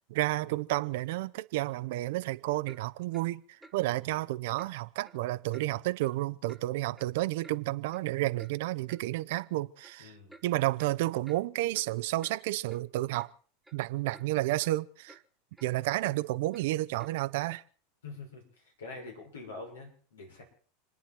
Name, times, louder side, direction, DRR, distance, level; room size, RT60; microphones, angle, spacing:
voice 1, 0.1-3.4 3.7-10.1 10.4-13.3 13.7-15.2 15.6-17.6, right 17 dB, 65° right, 0.7 m, -31 dB
Clock, 2.7-2.8 3.1-3.3 3.6-3.8 4.1-4.2 4.6-4.7 5.0-5.2 5.5-5.7 6.0-6.2 6.5-6.6 7.0-7.6 7.9-8.0 8.4-8.5 8.9-9.0 9.3-9.5 9.8-10.0 10.3-10.5 10.8-10.9 11.2-11.4 11.7-11.9 12.2-12.4 12.7-12.8 13.2-13.3 13.6-13.8 14.1-14.3 14.6-14.8 15.1-15.2 15.5-15.7 16.0-16.2 16.5-16.6 17.0-17.1 17.5-17.6, right 2 dB, 5° right, 1.7 m, -54 dB
voice 2, 3.8-4.2 10.0-10.3 18.0-20.4, left 3 dB, 80° left, 6.6 m, -46 dB
29.0 x 9.9 x 4.5 m
hypercardioid pair, 90°, 0 cm